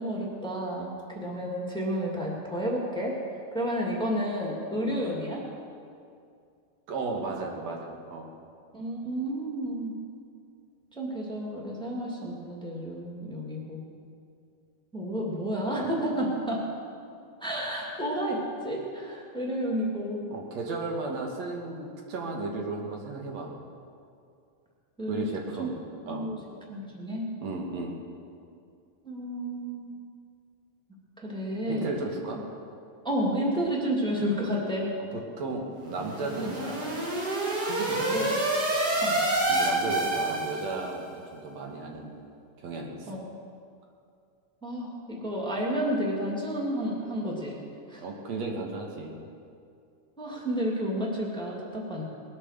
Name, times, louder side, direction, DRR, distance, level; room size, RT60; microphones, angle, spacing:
voice 1, 0.0-5.4 8.7-9.9 10.9-13.8 14.9-16.6 17.4-20.2 21.1-21.2 25.0-25.3 25.6-25.7 26.0-26.4 26.7-27.2 29.0-29.9 31.2-31.9 33.0-34.9 36.4-36.5 38.0-38.3 39.0-39.2 43.1-43.2 44.6-47.6 47.9-48.0 50.2-52.0, equal, ahead, -3 dB, 1.6 m, -31 dB
voice 2, 6.9-8.3 20.3-23.5 25.1-25.8 26.1-26.3 27.4-27.9 31.6-32.4 35.1-37.1 37.6-38.3 39.5-42.2 42.6-43.2 48.0-49.1, right 3 dB, 60° right, 1 dB, 2.5 m, -34 dB
sound 1, 35.9-40.9, right 2 dB, 35° right, 2.4 m, -28 dB
20.0 x 8.7 x 6.6 m, 2.4 s
omnidirectional pair, 3.8 m